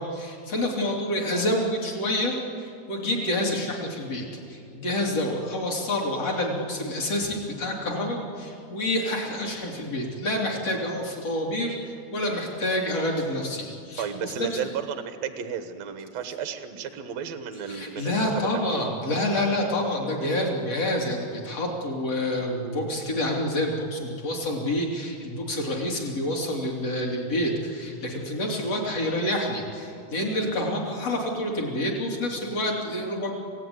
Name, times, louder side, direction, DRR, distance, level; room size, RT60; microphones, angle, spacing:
voice 1, 0.0-14.1 14.4-14.6 17.7-33.3, left 1 dB, 35° left, 0 dB, 3.8 m, -28 dB
voice 2, 14.0-18.8, right 7 dB, 70° right, 8 dB, 1.7 m, -33 dB
26.5 x 17.0 x 9.7 m, 2.4 s
omnidirectional pair, 5.0 m